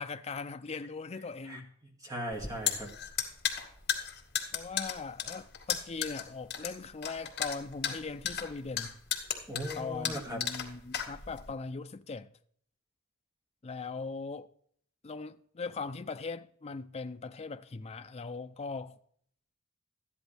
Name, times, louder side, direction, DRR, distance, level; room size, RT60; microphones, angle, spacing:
voice 1, 0.0-1.7 4.5-9.0 9.8-12.3 13.6-14.5 15.0-19.0, left 4 dB, 30° left, 0.5 m, -40 dB
voice 2, 1.5-2.9 9.5-10.5, equal, 20° right, 2.2 m, -39 dB
sound 1, 2.3-11.5, left 9 dB, 55° left, 2.2 m, -34 dB
13.5 x 10.5 x 3.4 m
head